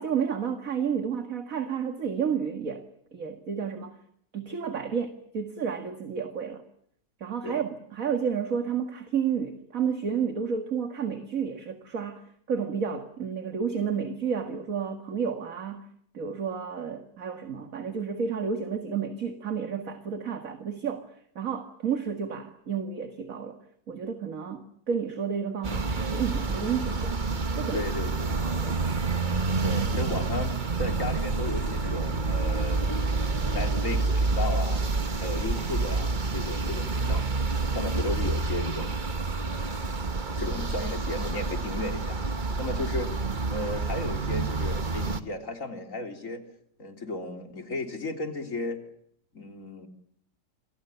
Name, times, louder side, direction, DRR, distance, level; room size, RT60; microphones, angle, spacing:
voice 1, 0.0-2.8 3.1-4.0 4.3-6.6 7.2-12.2 12.5-15.9 16.1-21.1 21.4-23.6 23.9-27.2 27.5-27.9 28.3-29.0, right 7 dB, 55° right, 7 dB, 2.3 m, -31 dB
sound 1, 25.6-45.2, right 3 dB, 30° right, 1.4 m, -28 dB
voice 2, 27.7-28.4 29.6-32.9 33.5-34.8 35.2-37.3 37.7-39.0 39.4-39.8 40.4-42.2 42.6-43.1 43.5-46.4 46.8-48.8 49.3-49.9, left 2 dB, 50° left, 5 dB, 3.6 m, -34 dB
28.0 x 25.0 x 6.9 m, 0.69 s
omnidirectional pair, 1.8 m